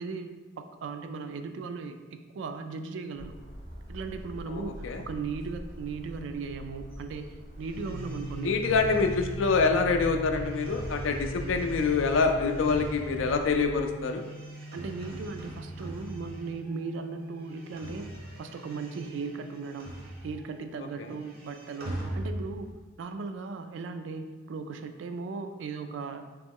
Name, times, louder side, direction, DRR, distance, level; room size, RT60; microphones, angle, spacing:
voice 1, 0.0-3.4 3.9-8.5 14.7-18.1 18.4-19.9 20.2-22.7 23.0-26.3, right 4 dB, 70° right, 8 dB, 0.3 m, -37 dB
sound 1, 3.1-13.8, equal, 90° right, 1.2 m, -42 dB
voice 2, 4.5-5.0 8.4-14.2, left 4 dB, 85° left, 5 dB, 0.4 m, -26 dB
sound 2, 7.6-16.9 17.2-20.6 20.9-22.8, right 1 dB, 50° right, 0.7 m, -43 dB
sound 3, 7.8-21.4, right 2 dB, 15° left, 0.3 m, -43 dB
3.1 x 3.0 x 3.6 m, 1.3 s
head